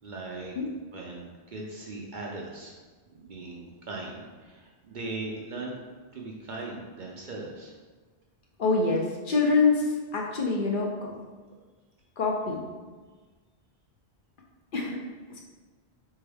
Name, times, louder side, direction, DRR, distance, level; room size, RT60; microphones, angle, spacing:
voice 1, 0.0-0.5 0.9-2.7 3.1-5.7 6.1-7.7, right 2 dB, 55° right, -1 dB, 0.6 m, -39 dB
voice 2, 8.6-11.1 12.2-12.7 14.7-15.0 15.3-15.4, left 4 dB, 55° left, -1 dB, 0.7 m, -25 dB
4.1 x 3.4 x 3.4 m, 1.4 s
omnidirectional pair, 1.1 m